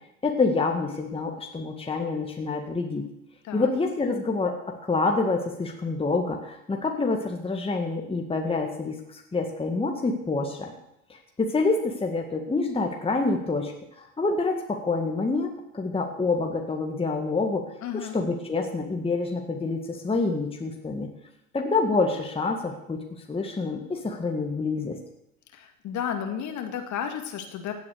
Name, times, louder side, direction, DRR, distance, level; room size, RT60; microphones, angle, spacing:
voice 1, 0.2-3.1 3.5-10.7 11.1-21.1 21.5-25.0, left 3 dB, 15° left, 2 dB, 1.9 m, -27 dB
voice 2, 17.8-18.2 25.5-27.7, left 8 dB, 40° left, 5 dB, 2.4 m, -32 dB
16.5 x 8.4 x 6.7 m, 0.83 s
hypercardioid pair, 80°, 43 cm